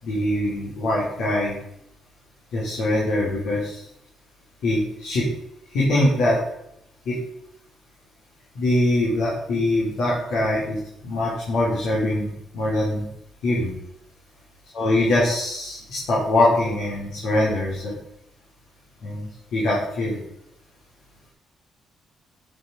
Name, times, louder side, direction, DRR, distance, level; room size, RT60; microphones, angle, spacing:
voice 1, 0.0-1.5 2.5-3.8 4.6-5.3 5.7-6.4 7.1-7.2 8.6-10.8 11.0-13.1 13.4-13.7 14.7-17.9 19.0-20.2, left 1 dB, 75° left, -6 dB, 5.5 m, -23 dB
14.5 x 8.7 x 5.5 m, 0.80 s
cardioid pair, 90°, 0 cm